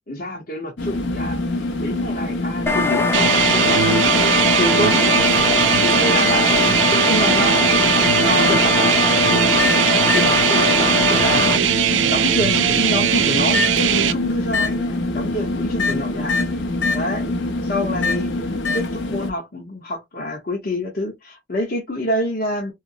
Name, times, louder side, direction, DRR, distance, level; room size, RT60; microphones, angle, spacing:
voice 1, 0.1-4.2 4.5-5.2 5.8-6.6 6.9-9.8 10.1-11.5 12.1-16.5 16.9-17.3 17.6-22.7, left 1 dB, 55° left, 1.0 m, -27 dB
sound 1, 0.8-19.3, left 2 dB, 75° left, 0.7 m, -25 dB
sound 2, 2.7-11.6, left 3 dB, 15° left, 0.5 m, -21 dB
sound 3, 3.1-14.1, right 10 dB, 85° right, 0.4 m, -19 dB
4.2 x 2.0 x 2.6 m
head